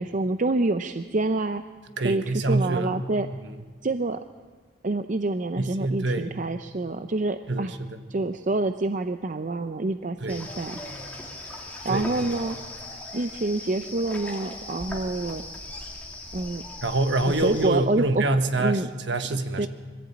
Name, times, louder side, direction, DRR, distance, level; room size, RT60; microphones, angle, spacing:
voice 1, 0.0-1.6 2.0-3.3 3.8-4.2 4.8-7.7 8.1-10.8 11.8-12.6 13.1-15.4 16.3-16.6 17.3-18.3 18.6-18.9 19.6-19.7, right 2 dB, 40° right, 9 dB, 0.6 m, -27 dB
voice 2, 2.0-2.9 3.4-3.6 5.6-6.4 7.5-8.0 10.2-10.4 11.9-12.2 16.8-19.7, right 2 dB, 65° right, 8 dB, 1.3 m, -26 dB
sound 1, 10.3-17.7, left 2 dB, 10° left, 2.7 m, -39 dB
22.0 x 15.0 x 8.7 m, 1.4 s
head